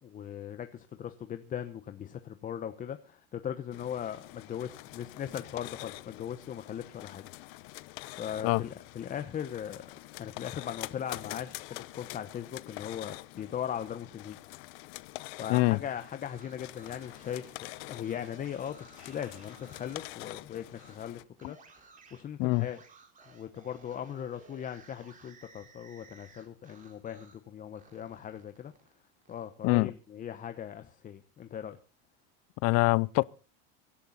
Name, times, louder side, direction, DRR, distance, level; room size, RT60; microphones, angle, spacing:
voice 1, 0.0-7.7 8.2-14.4 15.4-21.6 22.1-22.8 23.3-28.7 29.3-31.8, left 9 dB, 25° left, 1.1 m, -39 dB
sound 1, 3.7-21.2, left 21 dB, 70° left, 1.0 m, -46 dB
sound 2, 16.1-20.1 20.7-21.0 21.4-27.4 27.7-29.5, right 4 dB, 25° right, 4.2 m, -57 dB
voice 2, 32.6-33.2, left 22 dB, 50° left, 0.7 m, -24 dB
24.5 x 11.5 x 4.1 m
supercardioid pair, 145°, 30 cm